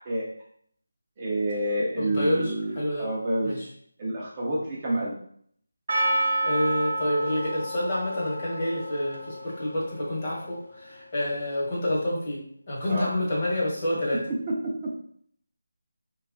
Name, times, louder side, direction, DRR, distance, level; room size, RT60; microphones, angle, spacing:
voice 1, 1.2-2.7 3.0-3.5 4.0-5.2 12.9-13.1 14.1-14.9, right 1 dB, 20° right, -6 dB, 0.6 m, -28 dB
voice 2, 1.9-3.1 3.4-3.7 6.1-14.3, left 1 dB, 30° left, -5 dB, 1.2 m, -28 dB
Percussion, 5.9-10.9, right 1 dB, 55° right, 0.8 m, -30 dB
3.1 x 2.3 x 3.8 m, 0.63 s
figure-of-eight pair, 165°, 0 cm